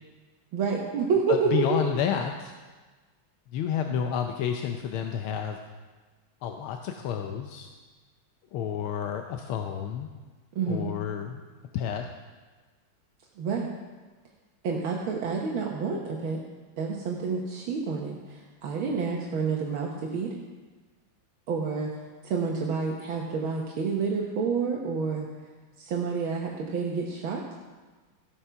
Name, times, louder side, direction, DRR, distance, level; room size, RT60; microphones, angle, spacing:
voice 1, 0.5-1.9 10.5-10.9 13.4-13.7 14.6-16.4 16.8-20.3 21.5-21.9 22.2-25.3 25.8-27.5, right 5 dB, 80° right, -1 dB, 2.0 m, -29 dB
voice 2, 1.3-2.5 3.5-5.6 6.4-7.7 8.5-10.1 10.7-11.4 11.7-12.1, left 8 dB, 90° left, 4 dB, 1.6 m, -30 dB
15.0 x 8.7 x 5.7 m, 1.3 s
omnidirectional pair, 2.2 m